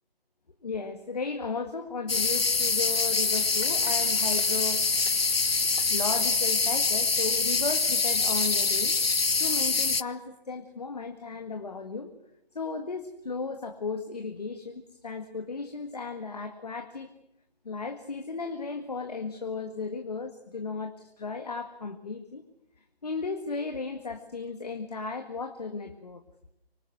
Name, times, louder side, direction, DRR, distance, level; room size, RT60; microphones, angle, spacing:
voice 1, 0.6-4.8 5.9-8.9 9.4-12.1 12.5-17.1 17.6-22.4 23.0-26.2, left 4 dB, 40° left, 6 dB, 2.0 m, -35 dB
sound 1, 2.1-10.0, left 4 dB, 75° left, 1.0 m, -25 dB
25.5 x 24.5 x 8.0 m, 0.78 s
figure-of-eight pair, 155°, 30 cm